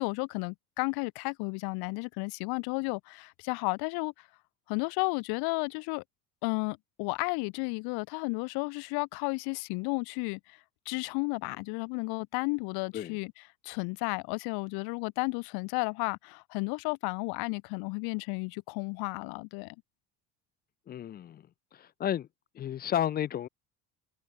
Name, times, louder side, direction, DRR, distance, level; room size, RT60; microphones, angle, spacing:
voice 1, 0.0-4.3 4.7-6.0 6.4-10.6 10.9-13.3 13.6-19.7, left 30 dB, 80° left, 0.9 m, -33 dB
voice 2, 20.9-21.4 21.7-22.3 22.5-23.5, left 10 dB, 25° left, 0.5 m, -32 dB
cardioid pair, 170°, 37 cm